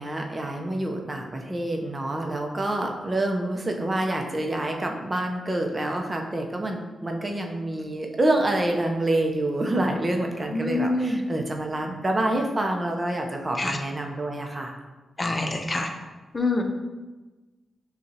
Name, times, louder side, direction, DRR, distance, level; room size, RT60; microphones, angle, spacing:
voice 1, 0.0-14.8, right 1 dB, 30° right, 2 dB, 0.7 m, -27 dB
voice 2, 10.5-11.2 13.6-13.8 15.2-15.9 16.3-16.7, left 2 dB, 35° left, 4 dB, 0.7 m, -25 dB
6.5 x 2.4 x 2.8 m, 1.2 s
supercardioid pair, 40°, 0 cm